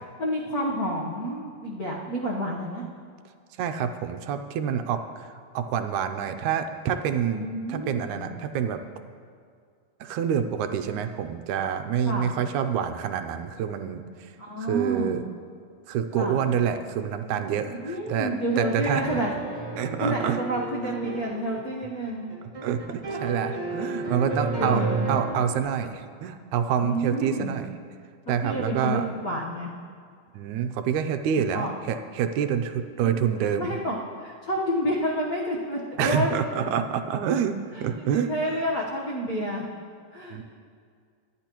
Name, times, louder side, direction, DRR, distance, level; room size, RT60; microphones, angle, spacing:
voice 1, 0.2-2.8 7.3-8.3 12.0-12.3 14.4-15.2 16.1-16.5 17.8-19.3 20.0-22.3 24.6-25.2 26.8-27.6 28.4-29.7 31.4-31.7 33.0-33.1 33.6-36.3 37.7-39.7 40.1-40.4, equal, 70° left, -3 dB, 0.8 m, -29 dB
voice 2, 3.6-8.8 10.0-14.3 14.7-15.2 15.9-19.2 19.8-20.4 20.9-21.0 22.6-24.8 25.1-27.7 28.3-29.1 30.3-33.8 36.0-38.3 40.3-40.4, right 8 dB, 80° right, 8 dB, 2.0 m, -27 dB
sound 1, 17.4-25.6, right 3 dB, 30° right, 0.7 m, -33 dB
25.0 x 10.5 x 3.0 m, 2.1 s
omnidirectional pair, 3.6 m